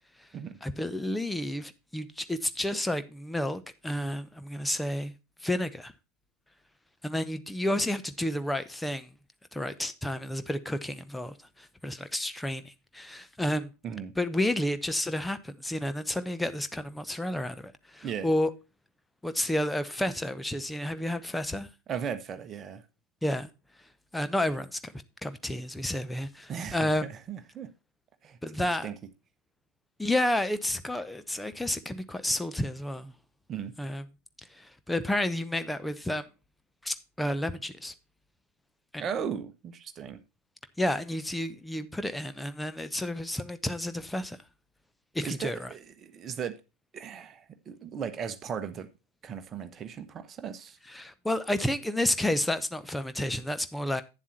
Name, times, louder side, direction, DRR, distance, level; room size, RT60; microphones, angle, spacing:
voice 1, 0.6-5.1 5.4-5.9 7.0-9.1 9.5-13.7 14.2-18.5 19.2-21.7 23.2-23.5 24.1-24.9 25.2-27.0 28.4-28.9 30.0-33.1 33.8-34.0 34.6-36.3 36.8-37.9 38.9-39.0 40.8-44.4 45.1-45.7 50.9-54.0, left 1 dB, 5° left, 0.8 m, -31 dB
voice 2, 21.9-22.8 26.5-27.7 28.2-28.4 28.8-28.9 33.5-33.7 39.0-40.2 45.2-46.6 46.9-48.9 49.2-50.8, right 7 dB, 25° right, 1.2 m, -37 dB
10.0 x 7.3 x 4.2 m
figure-of-eight pair, 90°, 0 cm